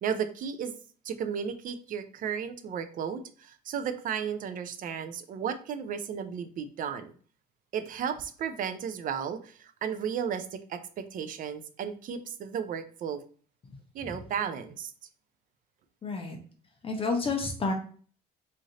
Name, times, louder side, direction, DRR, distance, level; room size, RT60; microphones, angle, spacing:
voice 1, 0.0-0.7 1.0-7.1 7.7-13.2 13.9-14.9, right 7 dB, 55° right, 10 dB, 0.5 m, -34 dB
voice 2, 16.0-16.4 16.8-17.7, left 3 dB, 35° left, 3 dB, 0.7 m, -29 dB
3.2 x 2.6 x 3.7 m, 0.43 s
cardioid pair, 110°, 17 cm